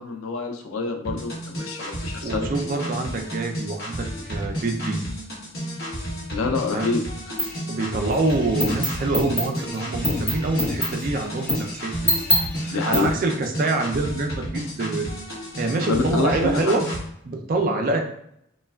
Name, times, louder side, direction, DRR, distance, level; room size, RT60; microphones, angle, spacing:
voice 1, 0.0-2.5 6.3-7.0 12.7-13.1 15.8-16.8, left 3 dB, 85° left, 5 dB, 0.4 m, -26 dB
sound 1, 1.0-17.0, equal, 50° left, 1.0 m, -32 dB
voice 2, 2.2-5.0 6.7-6.9 7.7-11.9 12.6-15.1 15.6-16.9 17.2-18.0, right 2 dB, 40° right, 3 dB, 0.3 m, -25 dB
sound 2, 7.4-7.6 8.1-13.0, left 1 dB, 10° left, 0.8 m, -25 dB
3.2 x 2.2 x 2.2 m, 0.72 s
head